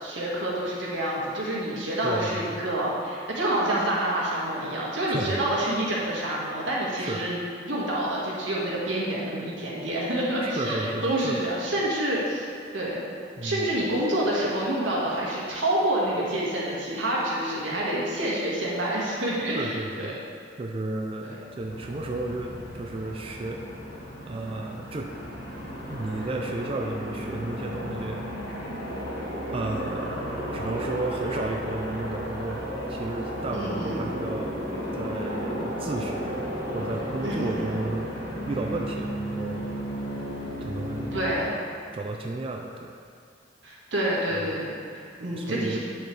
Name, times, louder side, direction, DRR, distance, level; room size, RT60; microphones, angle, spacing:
voice 1, 0.0-7.4 7.6-12.5 12.7-13.0 13.4-20.1 21.2-21.4 33.5-34.0 37.2-37.7 41.1-41.5 43.6-45.8, right 1 dB, 90° right, -5 dB, 1.8 m, -28 dB
voice 2, 2.0-2.6 5.0-5.4 6.9-7.2 10.4-11.5 13.4-13.7 18.3-18.5 19.5-20.2 20.6-23.6 24.3-25.1 25.9-28.3 29.5-34.6 34.9-38.1 38.5-39.7 40.6-41.1 41.9-43.0 44.3-44.5 45.3-45.8, right 2 dB, 30° right, 1 dB, 0.4 m, -33 dB
Aircraft, 21.5-41.4, equal, 65° left, 1.9 m, -34 dB
8.5 x 6.5 x 3.3 m, 2.3 s
head